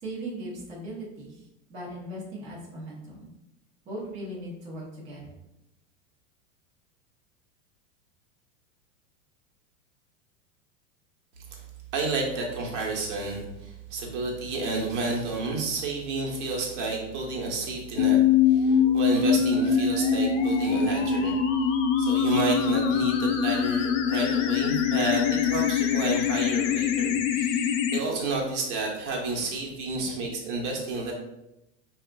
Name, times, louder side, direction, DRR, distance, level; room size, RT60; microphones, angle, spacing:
voice 1, 0.0-1.4 1.7-3.3 3.9-5.3, right 1 dB, 20° right, -6 dB, 0.8 m, -38 dB
voice 2, 11.9-18.2 18.5-21.4 22.0-31.1, right 3 dB, 65° right, -1 dB, 1.0 m, -30 dB
sound 1, 18.0-28.0, left 7 dB, 80° left, 0.5 m, -23 dB
4.6 x 2.4 x 2.2 m, 0.89 s
supercardioid pair, 160°, 38 cm